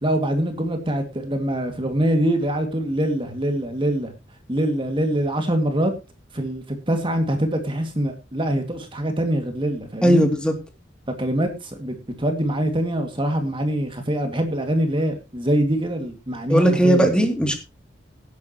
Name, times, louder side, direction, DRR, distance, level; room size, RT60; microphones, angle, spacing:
voice 1, 0.0-4.1 4.5-5.9 6.3-10.2 11.2-17.1, right 1 dB, 25° right, 5 dB, 2.2 m, -24 dB
voice 2, 10.0-10.6 16.5-17.6, equal, 5° left, 4 dB, 2.7 m, -17 dB
18.5 x 9.5 x 3.0 m, 0.28 s
head